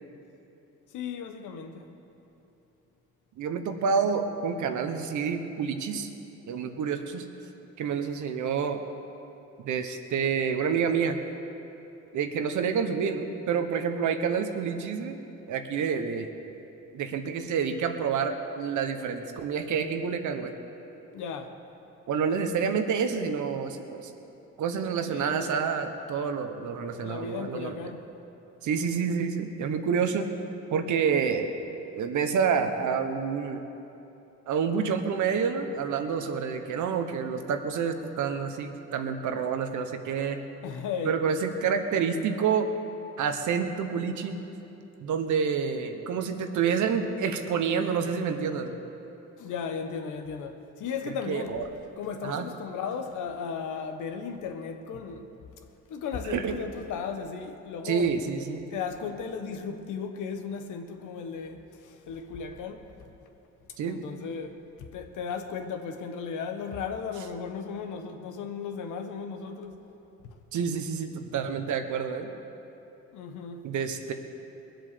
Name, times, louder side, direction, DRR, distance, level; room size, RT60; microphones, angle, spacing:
voice 1, 0.9-1.9 21.1-21.6 25.0-25.6 26.9-28.1 40.6-41.2 49.4-51.6 52.0-55.3 55.9-58.4 58.7-62.9 63.9-69.8 70.2-70.4 73.1-73.7, left 6 dB, 85° left, 1.2 m, -36 dB
voice 2, 3.4-6.1 6.5-7.2 7.8-8.8 9.6-11.2 12.1-15.2 15.5-16.3 16.9-20.5 22.1-24.1 24.6-27.7 28.6-30.3 30.7-31.5 31.9-33.6 34.5-40.4 41.0-42.7 43.2-44.4 45.0-48.8 51.3-51.6 52.2-52.5 56.3-56.5 57.8-58.6 63.8-64.0 70.5-72.3 73.6-74.1, right 6 dB, 75° right, 1.2 m, -28 dB
21.0 x 7.9 x 6.8 m
cardioid pair, 90°, 30 cm